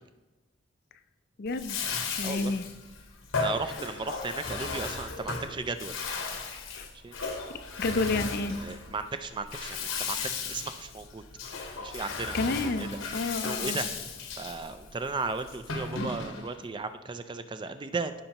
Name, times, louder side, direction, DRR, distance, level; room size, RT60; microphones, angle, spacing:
voice 1, 1.4-2.7 6.7-6.9 7.8-8.6 12.0-13.8, left 3 dB, 50° left, 11 dB, 0.5 m, -31 dB
Bathtub (filling or washing), 1.5-16.6, left 4 dB, 70° left, 1.0 m, -36 dB
voice 2, 3.4-5.9 7.0-7.1 7.9-8.0 8.5-11.2 11.8-12.4 12.6-12.9 13.4-13.9 14.4-18.1, right 4 dB, 25° right, 10 dB, 0.4 m, -35 dB
15.5 x 5.4 x 2.9 m, 1.1 s
head